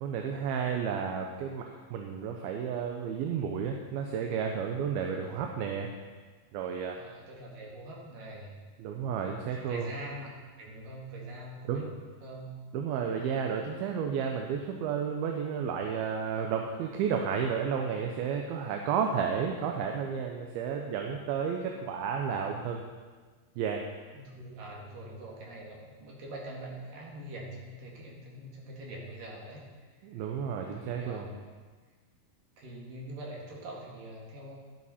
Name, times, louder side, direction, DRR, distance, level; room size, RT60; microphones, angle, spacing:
voice 1, 0.0-5.9 6.5-7.0 8.8-9.9 11.7-11.9 12.7-22.8 23.6-23.9 30.0-31.3, right 7 dB, 85° right, 2 dB, 2.7 m, -32 dB
voice 2, 7.0-8.6 9.6-12.5 24.1-29.6 30.1-30.2 30.7-31.4 32.6-34.6, right 1 dB, 65° right, -3 dB, 3.4 m, -44 dB
12.5 x 12.0 x 4.3 m, 1.4 s
omnidirectional pair, 4.3 m